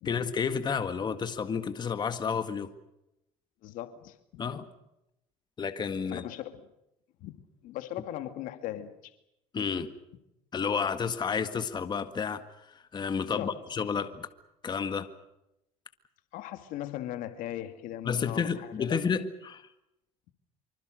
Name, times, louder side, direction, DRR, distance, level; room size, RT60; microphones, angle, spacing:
voice 1, 0.1-2.7 4.4-4.7 5.6-6.3 9.5-9.9 10.5-14.3 14.6-15.1 18.1-19.7, left 6 dB, 30° left, 1.9 m, -31 dB
voice 2, 3.6-4.4 6.1-6.7 7.2-7.4 7.6-9.1 13.2-13.6 16.3-19.0, left 13 dB, 70° left, 2.2 m, -39 dB
25.5 x 25.0 x 6.5 m
cardioid pair, 110°, 14 cm